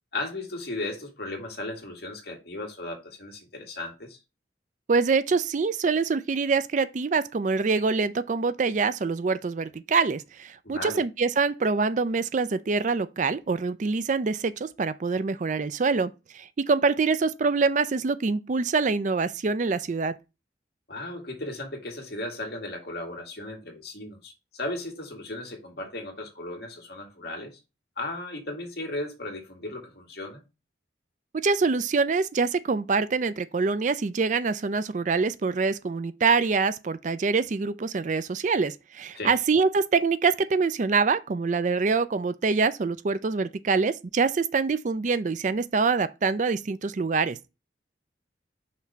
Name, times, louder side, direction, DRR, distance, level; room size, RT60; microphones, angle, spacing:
voice 1, 0.1-4.2 10.6-11.0 20.9-27.6 28.0-30.4 39.2-39.3, left 2 dB, 55° left, 2.0 m, -36 dB
voice 2, 4.9-20.1 31.3-47.4, right 4 dB, 40° right, 0.4 m, -25 dB
5.8 x 3.1 x 5.6 m
head